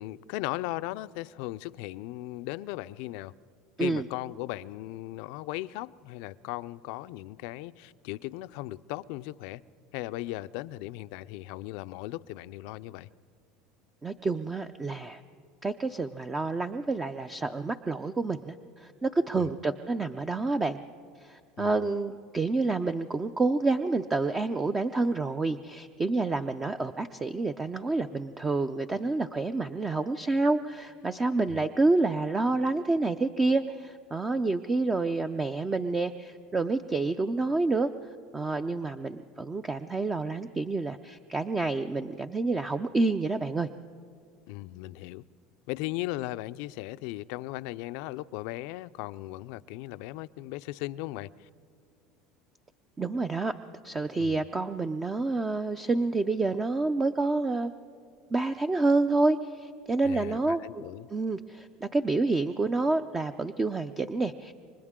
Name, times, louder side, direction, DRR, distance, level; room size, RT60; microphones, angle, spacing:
voice 1, 0.0-3.3 3.8-9.6 9.9-13.1 19.4-19.5 21.6-21.7 31.5-31.7 44.5-45.2 45.7-51.5 54.2-54.5 60.0-61.1, left 17 dB, 70° left, 0.4 m, -37 dB
voice 2, 14.0-15.2 15.6-20.8 21.2-37.9 38.3-43.7 53.0-53.5 53.8-57.7 58.3-60.8 61.1-64.5, right 3 dB, 20° right, 0.5 m, -28 dB
29.0 x 24.5 x 3.7 m
supercardioid pair, 115°, 0 cm